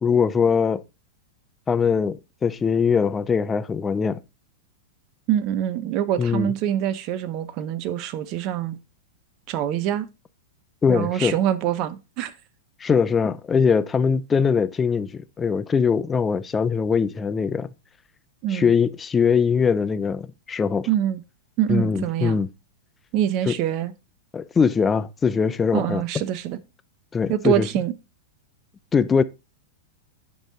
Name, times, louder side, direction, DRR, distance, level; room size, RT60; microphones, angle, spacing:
voice 1, 0.0-0.8 1.7-4.2 6.2-6.5 10.8-11.4 12.8-17.7 18.5-20.9 21.7-22.5 23.5-23.6 24.3-26.0 27.1-27.7 28.9-29.2, left 6 dB, 20° left, 0.6 m, -21 dB
voice 2, 5.3-8.8 9.5-10.1 10.9-12.3 18.4-18.7 20.9-21.2 21.6-22.4 23.1-23.9 25.7-26.6 27.3-27.9, right 11 dB, 40° right, 0.8 m, -25 dB
9.0 x 5.5 x 4.1 m
figure-of-eight pair, 95°, 0 cm